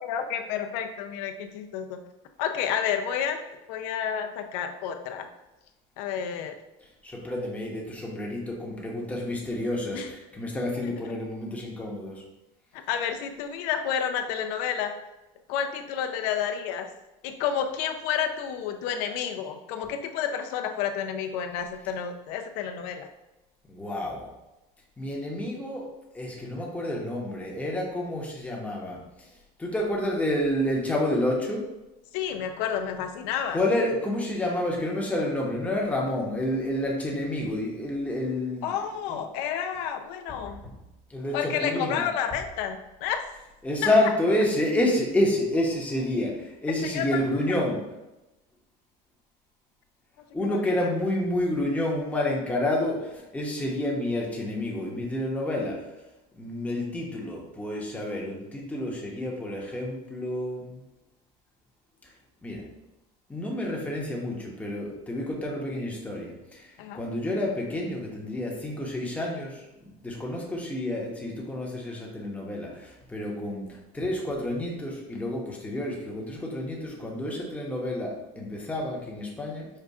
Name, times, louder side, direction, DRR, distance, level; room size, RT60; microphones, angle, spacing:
voice 1, 0.0-2.0 2.4-3.4 3.7-5.3 6.0-6.6 9.9-10.1 10.8-10.9 12.9-14.9 15.5-16.9 17.2-23.1 32.1-33.6 38.6-40.6 41.3-43.2 46.8-47.2 47.5-47.6 50.4-50.9 66.8-67.0, left 8 dB, 80° left, 6 dB, 0.6 m, -30 dB
voice 2, 7.0-12.2 23.7-24.3 25.0-25.9 26.1-29.3 29.6-31.7 33.5-38.8 39.1-39.2 40.5-40.8 41.1-42.1 43.6-47.8 50.3-55.8 56.4-60.8 62.4-62.6 63.3-69.7 70.0-79.7, left 1 dB, 5° left, -2 dB, 0.9 m, -29 dB
5.5 x 2.4 x 3.5 m, 0.99 s
cardioid pair, 135°, 19 cm